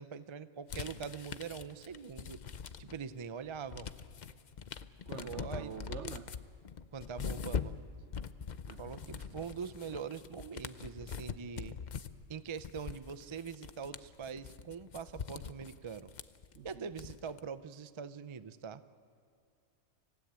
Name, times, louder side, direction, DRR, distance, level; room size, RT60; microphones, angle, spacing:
voice 1, 0.0-2.4 2.8-3.9 5.1-5.7 6.9-7.8 8.8-11.8 12.3-16.1 16.6-18.8, right 6 dB, 45° right, 13 dB, 0.4 m, -43 dB
sound 1, 0.7-3.1 3.5-17.4, left 6 dB, 45° left, 0.6 m, -43 dB
voice 2, 5.1-6.3 8.7-9.3 16.5-17.1, right 7 dB, 60° right, 12 dB, 1.1 m, -47 dB
26.0 x 16.5 x 8.8 m, 2.4 s
omnidirectional pair, 1.5 m